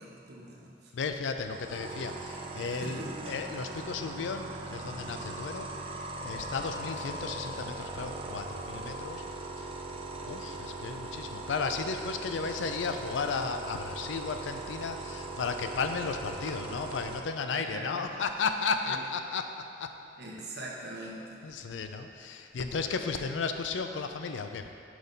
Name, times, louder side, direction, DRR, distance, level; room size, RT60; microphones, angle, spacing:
voice 1, 0.0-0.9 2.8-3.3 17.5-18.1 18.9-19.0 20.2-21.4, right 1 dB, 60° right, -3 dB, 1.1 m, -42 dB
voice 2, 0.9-5.7 6.2-9.2 9.6-9.8 10.2-19.9 21.4-24.7, left 4 dB, 80° left, 7 dB, 0.4 m, -34 dB
sound 1, 1.4-17.2, right 2 dB, 30° right, 0.4 m, -40 dB
6.1 x 5.2 x 4.0 m, 2.6 s
head